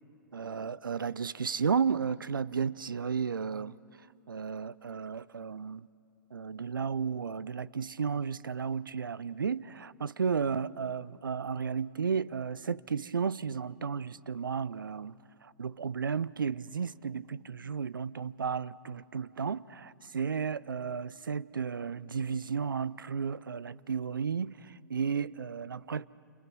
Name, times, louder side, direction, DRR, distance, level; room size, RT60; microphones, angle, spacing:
voice 1, 0.3-3.8 4.3-5.9 6.3-26.1, right 6 dB, 85° right, 0.5 m, -33 dB
30.0 x 27.0 x 6.1 m
hypercardioid pair, 120°, 11 cm